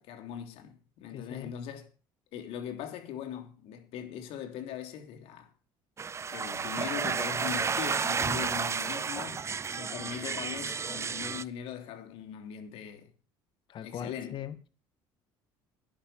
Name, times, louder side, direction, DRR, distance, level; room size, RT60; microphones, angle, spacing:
voice 1, 0.0-1.9 2.3-5.5 6.3-9.5 9.8-13.1 13.8-14.4, left 9 dB, 70° left, 3.2 m, -40 dB
voice 2, 1.1-1.5 13.7-14.7, left 9 dB, 50° left, 2.0 m, -40 dB
sound 1, 6.0-11.4, right 6 dB, 25° right, 0.7 m, -32 dB
12.0 x 10.5 x 5.7 m
supercardioid pair, 90°, 10 cm